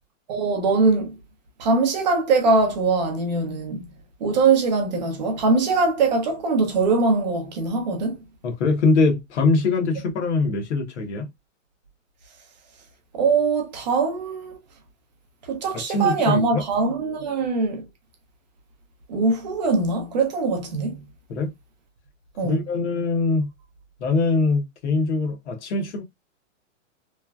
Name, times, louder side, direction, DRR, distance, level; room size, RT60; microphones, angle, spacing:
voice 1, 0.3-1.1 1.6-3.9 4.2-8.2 13.1-14.6 15.5-17.8 19.1-21.0 22.4-22.6, right 3 dB, 35° right, 0.7 m, -22 dB
voice 2, 8.4-11.3 15.7-16.6 21.3-21.5 22.4-23.5 24.0-26.0, left 3 dB, 60° left, 1.0 m, -22 dB
3.1 x 2.3 x 2.2 m
hypercardioid pair, 170°, 39 cm